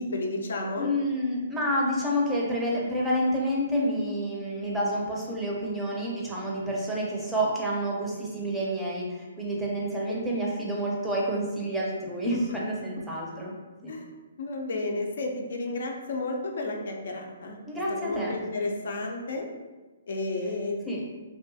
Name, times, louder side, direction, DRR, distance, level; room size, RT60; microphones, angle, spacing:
voice 1, 0.0-0.9 12.3-12.4 13.9-14.1 14.4-17.6 18.0-19.5 20.1-21.0, left 2 dB, 70° left, 1 dB, 0.4 m, -32 dB
voice 2, 0.8-13.5 13.8-13.9 17.7-18.3 20.9-21.0, equal, 5° right, -4 dB, 0.5 m, -29 dB
2.8 x 2.3 x 2.6 m, 1.2 s
hypercardioid pair, 145°, 0 cm